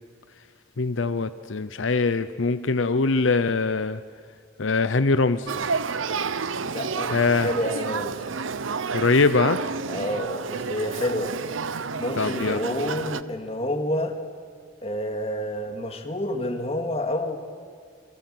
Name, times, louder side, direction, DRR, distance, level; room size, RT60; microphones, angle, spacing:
voice 1, 0.8-4.0 4.6-5.5 7.1-7.5 8.9-9.6 12.2-12.6, left 3 dB, 80° left, 12 dB, 0.8 m, -22 dB
Male speech man speaking / Child speech kid speaking / Conversation, 5.5-13.2, right 5 dB, 90° right, 0.9 m, -30 dB
voice 2, 6.6-8.2 9.9-11.3 12.0-14.2 14.8-17.4, left 1 dB, 30° left, 5 dB, 2.4 m, -29 dB
28.0 x 23.5 x 7.9 m, 2.1 s
head